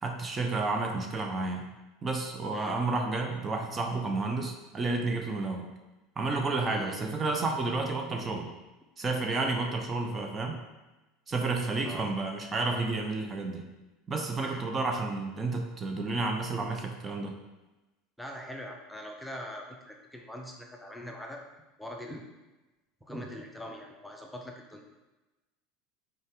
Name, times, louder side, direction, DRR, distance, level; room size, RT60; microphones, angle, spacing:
voice 1, 0.0-1.6 2.0-5.7 6.2-8.5 9.0-10.6 11.3-13.6 14.1-17.4, right 3 dB, 25° right, 3 dB, 0.8 m, -31 dB
voice 2, 18.2-21.4 21.8-22.3 23.0-24.8, equal, ahead, 1 dB, 0.8 m, -42 dB
5.4 x 4.5 x 3.8 m, 1.1 s
hypercardioid pair, 85°, 0 cm